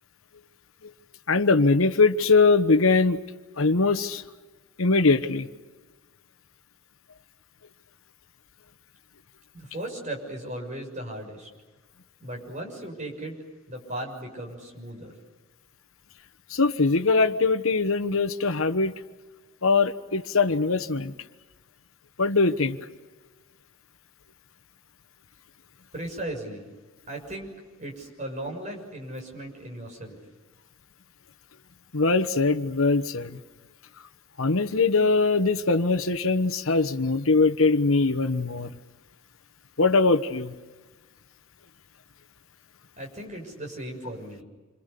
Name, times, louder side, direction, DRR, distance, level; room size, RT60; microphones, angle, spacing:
voice 1, 1.3-3.2 3.6-4.2 4.8-5.5 16.5-18.9 19.6-21.1 22.2-22.8 31.9-33.4 34.4-38.7 39.8-40.5, left 3 dB, 65° left, 11 dB, 1.2 m, -22 dB
voice 2, 9.5-11.5 12.2-13.4 13.7-15.1 25.9-26.7 27.1-27.5 27.8-30.2 43.0-44.4, right 1 dB, 35° right, 2 dB, 6.6 m, -37 dB
28.5 x 26.0 x 6.9 m, 1.3 s
head